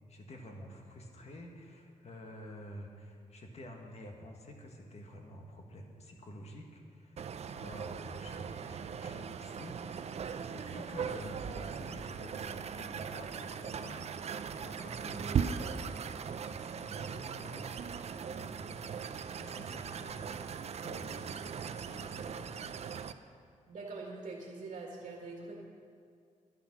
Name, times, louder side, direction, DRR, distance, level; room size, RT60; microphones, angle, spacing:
voice 1, 0.1-7.2 7.5-19.1 19.4-21.3 21.7-23.4, equal, 55° left, 2 dB, 1.7 m, -49 dB
sound 1, 7.2-23.1, right 7 dB, 55° right, 0.5 m, -39 dB
voice 2, 23.7-25.6, right 3 dB, 80° right, -2 dB, 1.8 m, -44 dB
11.5 x 10.5 x 6.1 m, 2.2 s
wide cardioid pair, 135°, 13 cm